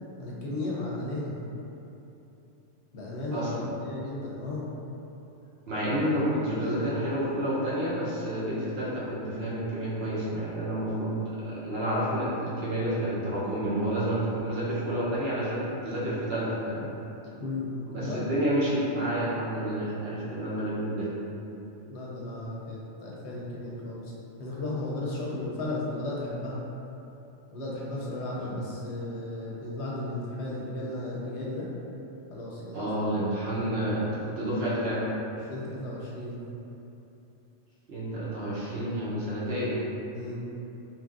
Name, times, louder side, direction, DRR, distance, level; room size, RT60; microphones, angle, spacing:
voice 1, 0.2-1.4 2.9-4.7 17.4-17.7 18.0-18.3 21.9-24.1 24.4-26.6 27.5-31.7 32.3-32.8 35.5-36.4 40.1-40.4, left 2 dB, 70° left, -5 dB, 0.8 m, -34 dB
voice 2, 3.3-3.7 5.7-16.9 17.9-21.2 28.4-28.5 32.7-35.0 37.9-39.7, right 1 dB, 60° right, -9 dB, 0.9 m, -29 dB
2.9 x 2.5 x 2.4 m, 2.9 s
omnidirectional pair, 1.3 m